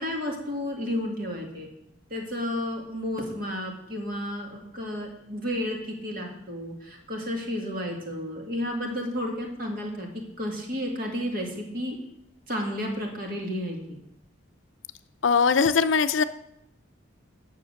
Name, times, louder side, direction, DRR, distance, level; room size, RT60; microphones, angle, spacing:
voice 1, 0.0-1.7 2.1-10.1 10.4-12.0 12.5-14.0, left 1 dB, 45° right, 1 dB, 2.2 m, -32 dB
voice 2, 15.2-16.2, left 5 dB, 70° left, 11 dB, 0.5 m, -21 dB
9.7 x 6.6 x 6.4 m, 0.79 s
head